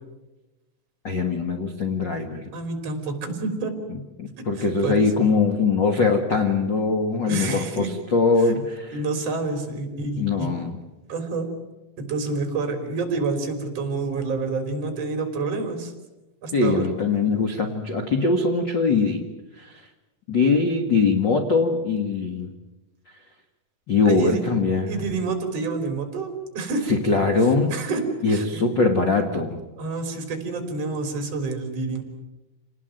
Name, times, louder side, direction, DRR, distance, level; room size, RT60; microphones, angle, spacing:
voice 1, 1.0-2.5 4.2-9.0 10.2-10.8 16.5-19.2 19.6-19.8 20.3-22.5 23.9-24.9 26.9-27.7 28.2-29.6, left 4 dB, 65° left, 5 dB, 1.1 m, -22 dB
voice 2, 2.5-3.7 4.5-5.1 7.3-7.9 8.9-10.5 11.1-11.5 12.0-15.9 16.4-16.8 24.1-24.4 24.9-26.9 27.7-28.0 28.3-28.6 29.8-32.0, right 3 dB, 40° right, 6 dB, 4.4 m, -28 dB
27.5 x 19.5 x 9.3 m, 1.1 s
omnidirectional pair, 4.9 m